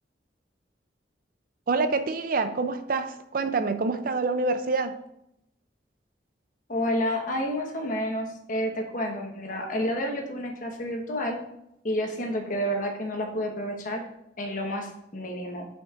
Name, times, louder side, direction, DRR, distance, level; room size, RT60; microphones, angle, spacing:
voice 1, 1.7-4.9, right 3 dB, 50° right, 0.4 m, -26 dB
voice 2, 6.7-11.4 11.8-14.0 14.4-15.7, equal, 50° left, 1.1 m, -30 dB
9.1 x 5.2 x 2.4 m
head